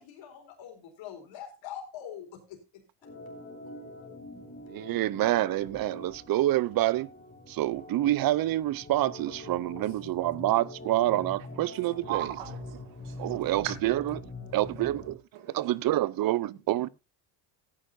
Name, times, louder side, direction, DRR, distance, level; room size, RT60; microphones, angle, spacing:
voice 1, 0.0-2.8, left 9 dB, 70° left, 4.1 m, -43 dB
Organ, 3.0-15.2, left 2 dB, 25° left, 3.8 m, -44 dB
voice 2, 4.7-7.1 7.5-12.3 13.2-14.2 14.5-15.2 15.5-16.9, right 15 dB, 50° right, 0.6 m, -27 dB
voice 3, 12.0-13.7 15.3-15.7 16.5-16.9, right 12 dB, 80° right, 2.1 m, -39 dB
16.5 x 9.9 x 2.6 m
cardioid pair, 100°, 47 cm